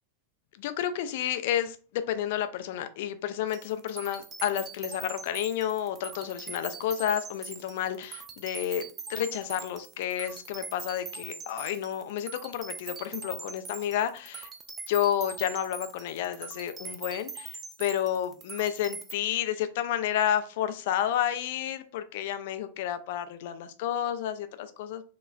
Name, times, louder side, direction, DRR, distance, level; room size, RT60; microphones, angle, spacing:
voice 1, 0.6-8.8 9.1-14.5 14.9-25.0, left 10 dB, 50° left, 10 dB, 0.4 m, -31 dB
sound 1, 3.5-19.1, right 5 dB, 20° right, 0.3 m, -42 dB
3.0 x 2.9 x 2.3 m, 0.39 s
figure-of-eight pair, 90°, 0 cm